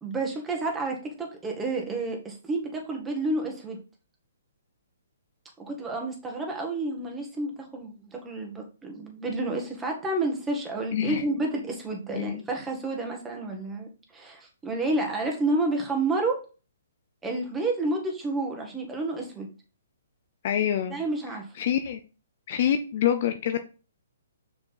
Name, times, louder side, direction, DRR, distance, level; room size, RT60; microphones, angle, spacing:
voice 1, 0.0-3.8 5.6-16.4 17.2-19.5 20.9-21.5, right 2 dB, 10° right, 1 dB, 1.9 m, -30 dB
voice 2, 10.9-11.2 12.1-12.4 20.4-21.0 21.6-22.0 22.5-23.7, left 9 dB, 50° left, 8 dB, 0.7 m, -26 dB
6.2 x 5.0 x 3.9 m, 0.34 s
hypercardioid pair, 140°, 0 cm